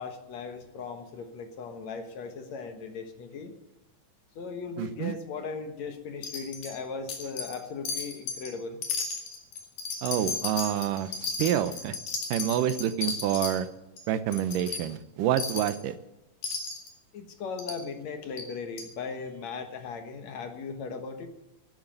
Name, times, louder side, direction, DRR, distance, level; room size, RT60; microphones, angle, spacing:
voice 1, 0.0-3.5 4.4-8.8 17.1-21.3, left 5 dB, 60° left, 7 dB, 2.5 m, -38 dB
voice 2, 4.8-5.1 10.0-11.9 12.3-13.7 14.1-15.9, right 11 dB, 85° right, 13 dB, 2.5 m, -28 dB
Wind chime, 6.2-6.8 7.1-7.6 7.9-8.5 8.8-13.5 14.0-14.1 14.3-14.8 15.4-15.8 16.4-16.9 17.6-17.8 18.4-18.5 18.8-18.9, left 5 dB, 75° left, 3.8 m, -34 dB
13.0 x 10.5 x 9.1 m, 0.96 s
omnidirectional pair, 3.7 m